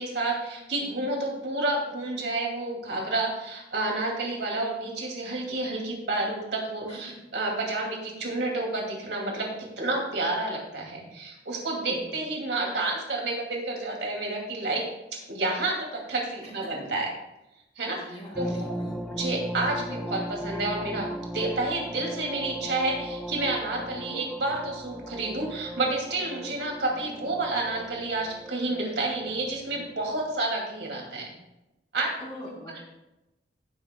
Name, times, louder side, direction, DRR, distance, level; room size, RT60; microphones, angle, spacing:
voice 1, 0.0-14.8 15.1-17.1 17.8-18.5 19.1-21.1 21.3-31.3 31.9-32.1 32.7-32.8, right 2 dB, 70° right, -1 dB, 2.6 m, -30 dB
voice 2, 11.8-12.2 16.4-16.5 17.8-19.0 24.0-24.2 32.2-32.8, equal, 35° left, -3 dB, 3.1 m, -42 dB
sound 1, 18.3-30.5, equal, ahead, 0.4 m, -37 dB
16.0 x 7.6 x 2.3 m, 0.96 s
head